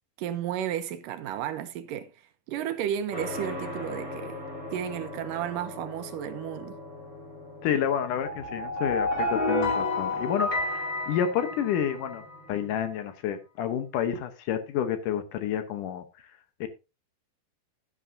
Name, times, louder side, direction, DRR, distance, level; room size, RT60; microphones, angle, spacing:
voice 1, 0.2-2.1 2.5-4.4 4.7-6.8, right 10 dB, 80° right, 2.2 m, -33 dB
sound 1, 3.1-12.8, left 1 dB, 30° right, 4.3 m, -42 dB
voice 2, 7.6-12.2 12.5-16.0 16.6-16.7, left 9 dB, 70° left, 2.3 m, -29 dB
sound 2, 8.2-12.2, left 2 dB, 40° left, 2.9 m, -29 dB
11.0 x 10.5 x 2.6 m
omnidirectional pair, 4.1 m